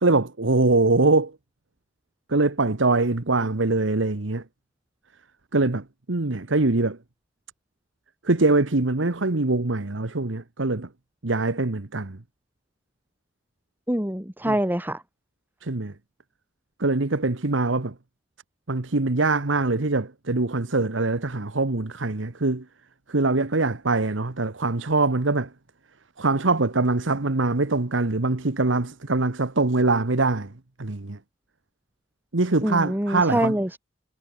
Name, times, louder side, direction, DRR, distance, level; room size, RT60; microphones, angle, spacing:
voice 1, 0.0-1.3 2.3-4.4 5.5-7.0 8.2-10.9 11.2-12.2 14.5-14.6 15.6-15.9 16.8-17.9 18.7-22.6 23.1-25.5 26.2-30.5 30.8-31.2 32.3-33.6, right 3 dB, 85° right, 1.3 m, -23 dB
voice 2, 13.9-15.0 32.6-33.8, right 1 dB, 10° right, 3.0 m, -25 dB
head